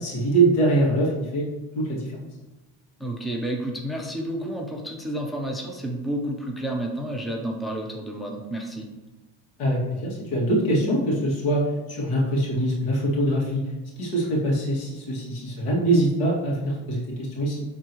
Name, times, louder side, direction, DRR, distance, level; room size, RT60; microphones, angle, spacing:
voice 1, 0.0-1.5 1.8-2.2 9.6-13.7 14.0-17.6, right 1 dB, 85° left, -4 dB, 2.3 m, -23 dB
voice 2, 3.0-8.9, right 1 dB, ahead, 0 dB, 0.7 m, -30 dB
11.0 x 3.7 x 3.1 m, 1.1 s
cardioid pair, 130°, 40 cm